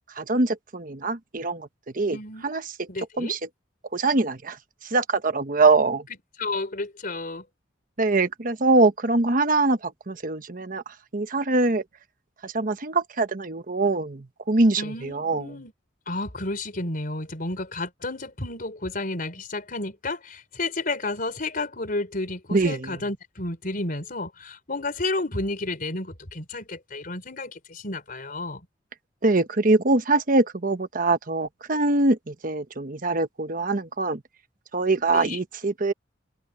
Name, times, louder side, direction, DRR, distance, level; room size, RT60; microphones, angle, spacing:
voice 1, 0.2-1.7 1.9-2.2 2.4-2.6 3.2-3.4 3.9-4.6 4.9-6.0 8.0-10.8 11.1-11.8 12.4-15.4 22.5-23.0 29.2-34.2 34.7-35.9, right 3 dB, 45° right, 1.1 m, -23 dB
voice 2, 2.1-2.5 2.9-3.4 6.4-7.4 14.8-15.7 16.1-28.6 35.1-35.4, left 2 dB, 50° left, 4.2 m, -31 dB
head